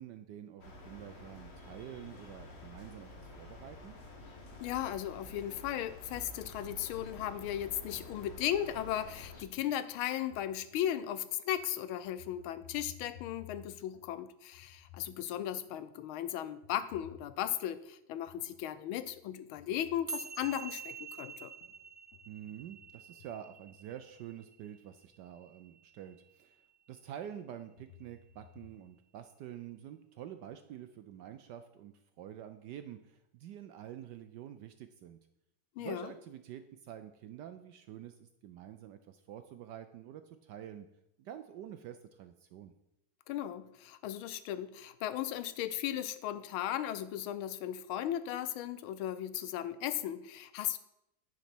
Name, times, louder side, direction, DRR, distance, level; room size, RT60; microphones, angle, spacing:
voice 1, 0.0-4.0 22.3-26.6 26.9-35.2 35.8-40.9 41.2-42.7, right 10 dB, 75° right, 9 dB, 1.0 m, -48 dB
sound 1, 0.6-9.4, left 2 dB, 40° left, 1.2 m, -50 dB
voice 2, 4.6-21.5 35.8-36.1 43.3-50.8, left 11 dB, 85° left, 14 dB, 1.4 m, -36 dB
sound 2, 9.2-9.3 9.6-11.1 11.6-11.8 12.1-14.2 14.5-16.0 16.6-17.8 18.2-18.6 18.9-21.0 21.6-24.2 25.1-25.2 25.7-25.8 27.2-28.8, left 6 dB, 55° left, 1.4 m, -57 dB
sound 3, 20.1-26.6, right 5 dB, 30° right, 0.6 m, -47 dB
10.0 x 5.2 x 6.0 m, 0.83 s
omnidirectional pair, 2.3 m